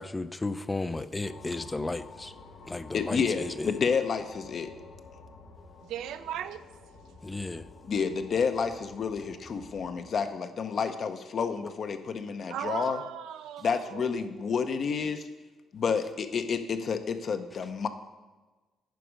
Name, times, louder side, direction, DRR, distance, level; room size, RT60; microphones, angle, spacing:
voice 1, 0.0-2.3 2.7-3.8 7.2-7.7, left 2 dB, 20° left, 0.4 m, -34 dB
sound 1, 1.2-10.1, left 3 dB, 80° left, 1.6 m, -51 dB
voice 2, 2.9-4.7 7.8-13.0 13.6-15.3 15.7-17.9, left 6 dB, 55° left, 0.7 m, -30 dB
voice 3, 5.9-6.6 12.5-14.1, right 10 dB, 85° right, 0.4 m, -37 dB
9.3 x 5.2 x 5.1 m
cardioid pair, 90°, 0 cm